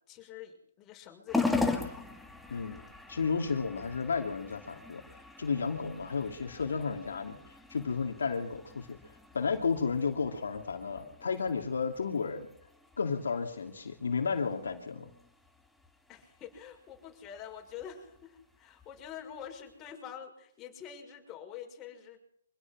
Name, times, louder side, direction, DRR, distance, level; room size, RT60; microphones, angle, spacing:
voice 1, 0.1-2.1 16.1-22.2, left 9 dB, 20° left, 3 dB, 5.6 m, -46 dB
sound 1, 1.3-19.9, left 3 dB, 5° left, 2.4 m, -40 dB
voice 2, 3.1-5.0 5.4-7.4 7.7-9.0 9.3-12.4 13.0-15.1, left 5 dB, 70° left, 4 dB, 2.7 m, -32 dB
25.5 x 17.5 x 6.2 m, 0.69 s
hypercardioid pair, 135°, 0 cm